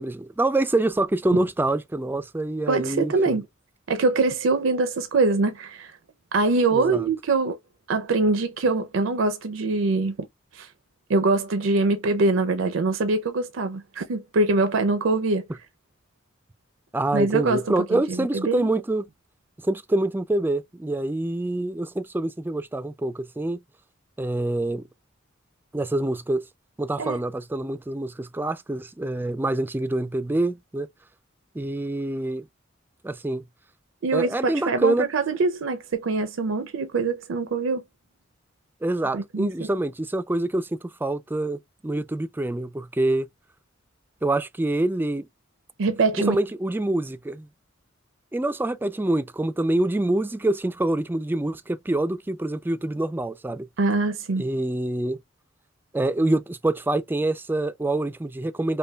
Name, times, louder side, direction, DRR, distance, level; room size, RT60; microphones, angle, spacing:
voice 1, 0.0-3.4 6.7-7.1 16.9-19.1 19.6-23.6 24.2-24.8 25.7-26.4 26.8-30.9 31.5-32.5 33.0-33.4 34.1-35.1 38.8-43.3 44.2-45.3 46.2-47.5 48.3-53.7 54.4-55.2 55.9-58.8, right 2 dB, 10° right, 0.3 m, -26 dB
voice 2, 2.7-3.4 3.9-6.0 6.3-7.6 7.9-10.2 10.5-10.7 11.1-15.5 17.1-17.6 17.9-18.7 27.0-27.2 34.0-37.8 39.1-39.7 45.8-46.4 53.8-54.5, right 3 dB, 75° right, 0.5 m, -23 dB
5.3 x 2.2 x 2.2 m
head